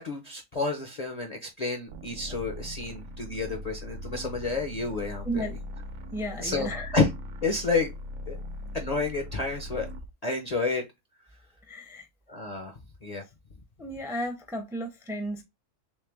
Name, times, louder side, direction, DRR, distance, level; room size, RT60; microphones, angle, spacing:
voice 1, 0.0-5.4 6.4-7.1 7.4-7.9 8.3-8.4 8.7-9.9 10.2-10.8 12.3-12.7 13.0-13.2, left 3 dB, 45° left, 0.6 m, -30 dB
sound 1, 1.9-10.1, left 1 dB, 90° right, 1.1 m, -40 dB
voice 2, 5.2-5.8 6.1-6.9 11.7-12.1 13.8-15.4, right 1 dB, 5° right, 0.5 m, -34 dB
3.3 x 3.2 x 3.4 m
omnidirectional pair, 1.4 m